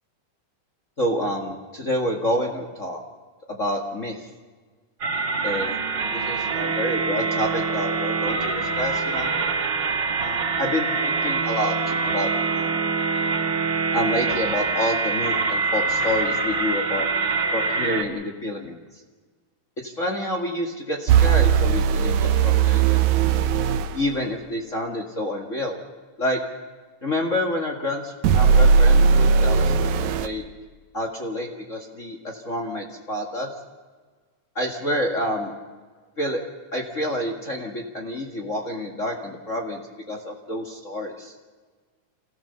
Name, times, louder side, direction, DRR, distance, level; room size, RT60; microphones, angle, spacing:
voice 1, 1.0-3.0 3.5-4.3 5.4-5.7 6.1-9.3 10.2-11.8 12.0-12.8 13.9-17.1 17.5-18.8 19.8-23.1 23.9-25.8 26.2-26.4 27.0-30.4 30.9-33.5 34.6-35.5 36.2-36.4 36.7-39.8 40.1-41.3, left 1 dB, 30° left, 2 dB, 1.8 m, -28 dB
sound 1, 5.0-18.0, right 4 dB, 45° right, 1.9 m, -25 dB
sound 2, 21.1-23.9 28.2-30.3, right 6 dB, 75° right, 2.2 m, -18 dB
28.0 x 16.0 x 7.0 m, 1.4 s
omnidirectional pair, 3.6 m